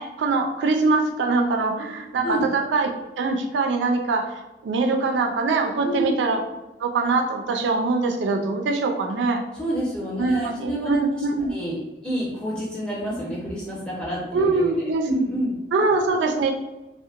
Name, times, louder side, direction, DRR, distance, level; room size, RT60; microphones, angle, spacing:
voice 1, 0.0-2.9 3.2-6.4 6.8-9.4 10.2-11.5 14.3-15.1 15.7-16.5, right 3 dB, 85° right, 3 dB, 0.3 m, -23 dB
voice 2, 5.8-6.1 9.6-11.2 11.5-15.6, right 1 dB, 5° left, -6 dB, 0.6 m, -28 dB
2.7 x 2.1 x 2.4 m, 1.0 s
head